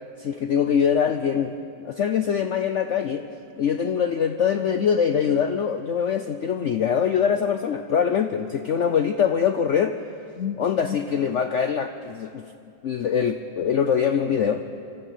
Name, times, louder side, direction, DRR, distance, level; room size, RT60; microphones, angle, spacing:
voice 1, 0.2-3.3 3.6-10.0 10.4-12.5 12.8-14.6, left 7 dB, 85° left, 8 dB, 0.6 m, -23 dB
25.0 x 13.0 x 8.1 m, 2.5 s
omnidirectional pair, 2.1 m